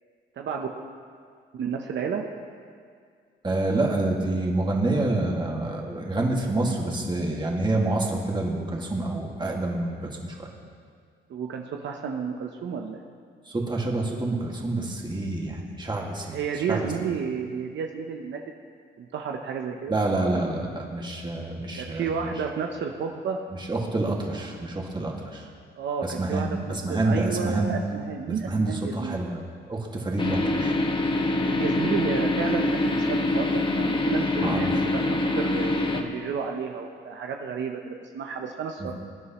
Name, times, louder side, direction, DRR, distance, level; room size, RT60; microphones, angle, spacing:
voice 1, 0.4-0.7 1.5-2.3 11.3-13.0 16.3-18.4 19.0-20.0 21.7-23.4 25.8-29.2 31.5-38.9, right 6 dB, 65° right, 3 dB, 0.8 m, -31 dB
voice 2, 3.4-10.1 10.4-10.5 13.5-16.3 16.7-16.9 19.9-22.3 23.7-25.5 26.0-27.7 28.4-29.4 29.7-30.8 34.4-34.7 38.8-38.9, right 2 dB, 20° right, -1 dB, 2.0 m, -27 dB
sound 1, 30.2-36.0, left 2 dB, 25° left, 1.1 m, -25 dB
21.5 x 9.6 x 3.0 m, 2.1 s
cardioid pair, 90°, 20 cm